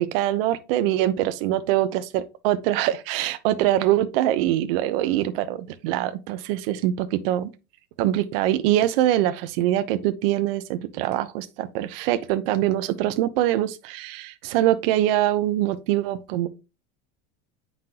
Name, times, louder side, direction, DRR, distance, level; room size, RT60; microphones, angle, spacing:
voice 1, 0.0-7.5 8.0-16.5, right 13 dB, 65° right, 0.9 m, -23 dB
9.1 x 5.9 x 2.9 m
supercardioid pair, 155°, 30 cm